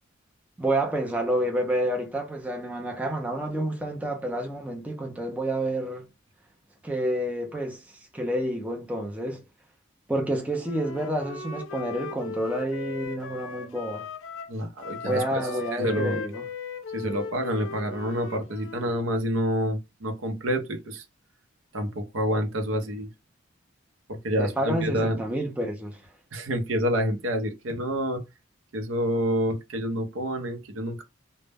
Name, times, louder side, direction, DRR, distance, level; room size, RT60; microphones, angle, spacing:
voice 1, 0.6-6.1 6.8-9.4 10.1-14.1 15.0-16.4 24.4-26.0, right 1 dB, 5° right, 0.4 m, -29 dB
Wind instrument woodwind instrument, 10.6-19.1, left 4 dB, 80° left, 0.4 m, -38 dB
voice 2, 14.5-16.2 16.9-21.0 21.7-23.1 24.1-25.2 26.3-28.2 28.7-31.0, equal, 80° right, 0.6 m, -28 dB
2.1 x 2.0 x 3.3 m
head